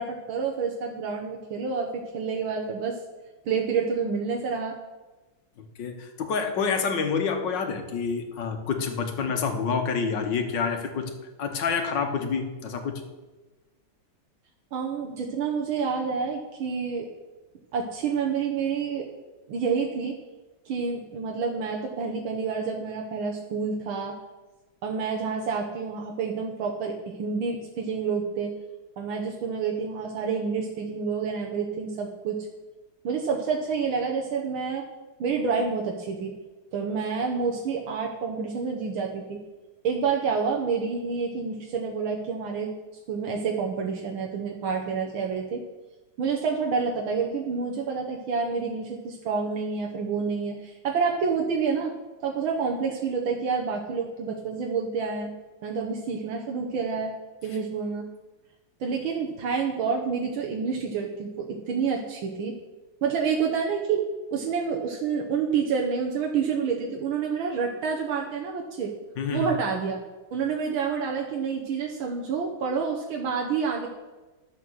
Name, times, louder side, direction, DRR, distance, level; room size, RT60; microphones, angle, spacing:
voice 1, 0.0-3.0 3.5-4.8 14.7-17.1 17.7-19.1 19.5-20.2 20.7-24.1 24.8-28.5 29.0-32.5 33.0-34.9 35.2-36.3 36.7-39.4 39.8-42.7 43.1-45.6 46.2-51.9 52.2-55.3 55.6-57.1 57.4-58.1 58.8-62.5 63.0-64.0 64.3-68.9 69.3-70.0 70.3-73.9, right 5 dB, 85° right, 0 dB, 1.9 m, -28 dB
voice 2, 5.8-11.1 11.4-13.0 69.2-69.5, left 5 dB, 65° left, 5 dB, 1.9 m, -28 dB
11.0 x 7.5 x 6.4 m, 1.2 s
omnidirectional pair, 2.2 m